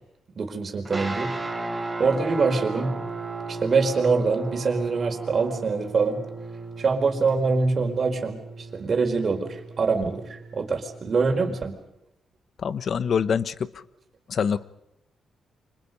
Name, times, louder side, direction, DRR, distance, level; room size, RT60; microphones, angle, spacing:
voice 1, 0.4-1.7 2.0-2.9 3.5-6.2 6.8-11.8, right 4 dB, 45° right, 4 dB, 4.5 m, -24 dB
sound 1, 0.8-11.4, right 3 dB, 15° right, 5.1 m, -35 dB
voice 2, 12.6-13.7 14.3-14.6, left 7 dB, 55° left, 15 dB, 1.0 m, -25 dB
29.0 x 25.5 x 5.4 m, 0.83 s
cardioid pair, 110°, 0 cm